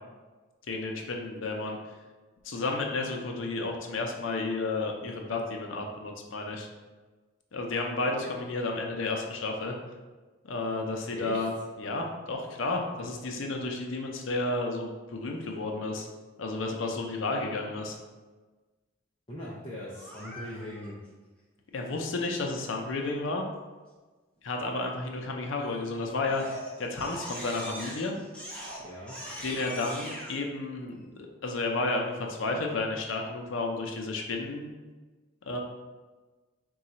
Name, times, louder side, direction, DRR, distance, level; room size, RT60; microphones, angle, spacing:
voice 1, 0.7-1.8 2.4-6.7 7.5-9.8 10.5-11.5 11.8-16.1 16.4-18.0 21.7-23.4 24.4-28.1 29.4-34.7 35.5-35.6, left 2 dB, 80° left, 2 dB, 0.5 m, -32 dB
voice 2, 11.0-11.4 19.3-21.0 28.8-29.2, equal, 25° left, -5 dB, 0.5 m, -40 dB
Crying sobbing, 19.9-20.9 25.5-25.9 26.2-30.3, equal, 5° left, 0.9 m, -41 dB
3.8 x 2.3 x 4.1 m, 1.3 s
head